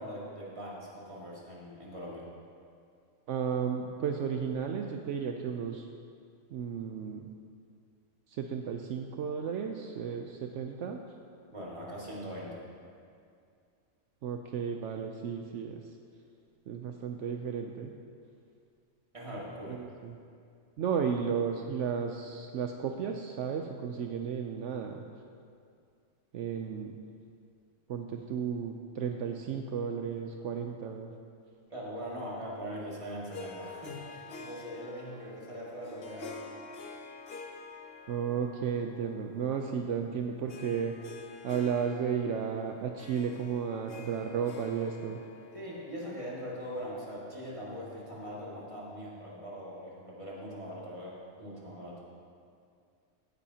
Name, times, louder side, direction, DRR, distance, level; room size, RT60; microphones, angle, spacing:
voice 1, 0.0-2.2 11.5-12.6 19.1-19.8 31.7-36.4 45.5-52.0, equal, 25° right, -6 dB, 2.2 m, -41 dB
voice 2, 3.3-5.9 6.5-7.3 8.3-11.0 14.2-15.8 16.7-17.9 19.7-20.1 20.8-25.0 26.3-27.0 27.9-31.1 38.1-41.2 41.4-45.2, right 7 dB, 75° right, 4 dB, 0.9 m, -33 dB
Harp, 33.3-46.9, left 3 dB, 55° left, 0.9 m, -48 dB
16.0 x 9.8 x 2.8 m, 2.3 s
omnidirectional pair, 1.3 m